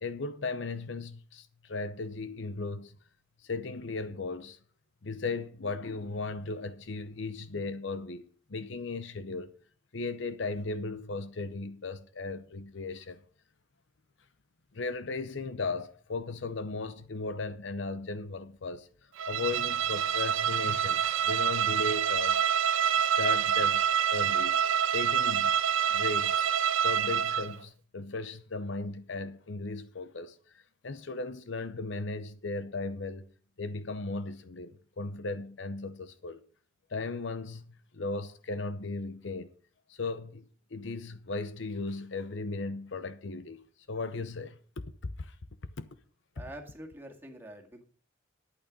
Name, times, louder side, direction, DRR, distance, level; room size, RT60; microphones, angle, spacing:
voice 1, 0.0-2.9 3.4-4.6 5.0-9.5 9.9-13.2 14.7-18.9 19.3-22.4 23.0-23.8 24.1-24.5 24.9-25.5 25.9-26.5 26.8-30.3 30.8-33.3 33.6-36.4 36.9-37.6 37.9-39.5 40.0-40.4 40.7-43.6 43.9-45.3 45.8-45.9, left 3 dB, 65° left, 0.8 m, -36 dB
Bowed string instrument, 19.2-27.6, right 8 dB, 75° right, 0.5 m, -27 dB
voice 2, 46.4-47.8, right 1 dB, 10° right, 2.1 m, -45 dB
12.0 x 8.9 x 5.2 m
head